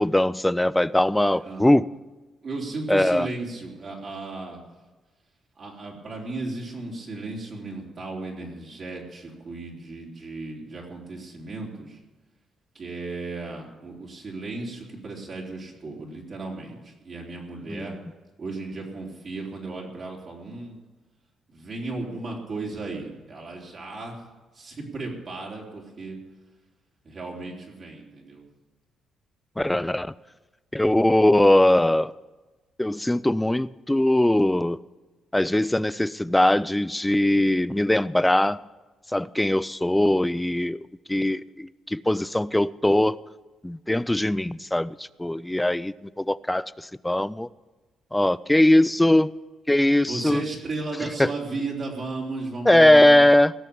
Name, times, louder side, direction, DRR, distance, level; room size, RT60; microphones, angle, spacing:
voice 1, 0.0-1.9 2.9-3.3 17.7-17.9 29.6-30.1 30.7-32.1 32.8-34.8 35.3-38.6 39.1-40.8 41.1-43.2 43.6-46.7 47.0-47.5 48.1-49.3 49.7-50.4 51.2-51.3 52.7-53.5, left 1 dB, 10° left, 19 dB, 0.4 m, -20 dB
voice 2, 1.3-1.7 2.4-4.6 5.6-12.0 12.7-18.0 18.4-20.8 21.5-24.2 24.5-26.2 27.0-28.4 50.0-53.3, right 3 dB, 45° right, -2 dB, 3.8 m, -35 dB
17.5 x 6.9 x 8.6 m, 1.2 s
cardioid pair, 90°, 0 cm